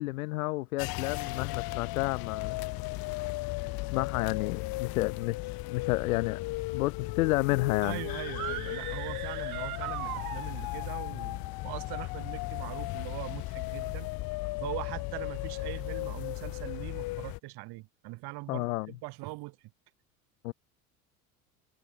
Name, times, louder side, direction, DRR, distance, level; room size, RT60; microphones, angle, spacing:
voice 1, 0.0-2.6 3.9-6.4 6.7-8.0 18.5-18.9 20.4-20.5, left 20 dB, 75° left, 1.8 m, -30 dB
sound 1, 0.8-17.4, left 20 dB, 55° left, 1.4 m, -36 dB
voice 2, 7.8-14.1 14.6-19.6, right 22 dB, 60° right, 4.6 m, -41 dB
sound 2, 8.3-10.9, right 16 dB, 80° right, 1.1 m, -39 dB
hypercardioid pair, 75°, 43 cm